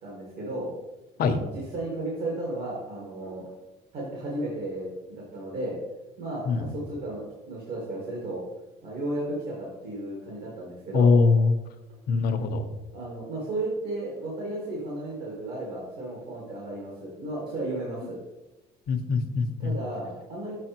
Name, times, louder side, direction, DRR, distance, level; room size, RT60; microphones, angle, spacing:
voice 1, 0.0-0.7 1.2-3.5 3.9-5.8 6.2-8.4 8.8-11.2 12.9-18.2 19.6-20.6, right 2 dB, 75° right, -4 dB, 1.9 m, -34 dB
voice 2, 10.9-11.5 12.1-12.6 18.9-19.7, left 4 dB, 65° left, 7 dB, 0.7 m, -22 dB
6.3 x 5.6 x 2.9 m, 1.0 s
cardioid pair, 110°, 17 cm